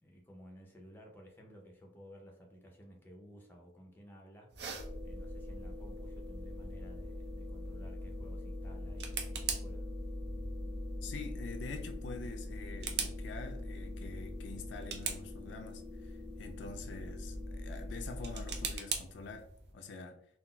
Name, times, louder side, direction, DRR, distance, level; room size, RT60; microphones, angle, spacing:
voice 1, 0.0-4.5 5.0-9.9 16.6-16.8, equal, 10° left, 0.5 m, -55 dB
sound 1, 4.5-19.7, right 6 dB, 60° right, 0.4 m, -45 dB
sound 2, 4.8-18.8, left 1 dB, 10° right, 1.0 m, -42 dB
voice 2, 11.0-20.3, left 4 dB, 70° left, 0.3 m, -46 dB
3.7 x 2.3 x 2.2 m
head